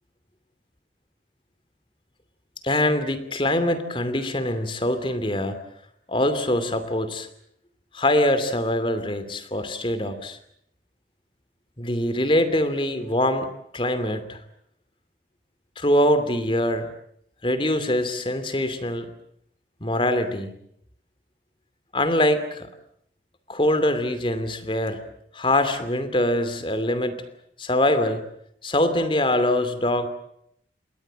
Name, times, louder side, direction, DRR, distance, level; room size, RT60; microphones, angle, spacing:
voice 1, 2.6-5.6 6.1-7.3 7.9-10.4 11.8-13.5 13.7-14.4 15.8-16.9 17.4-19.1 19.8-20.5 21.9-22.7 23.5-25.0 25.3-27.2 27.6-28.2 28.6-30.1, left 1 dB, 30° left, 11 dB, 2.7 m, -23 dB
27.5 x 22.0 x 7.6 m, 0.72 s
head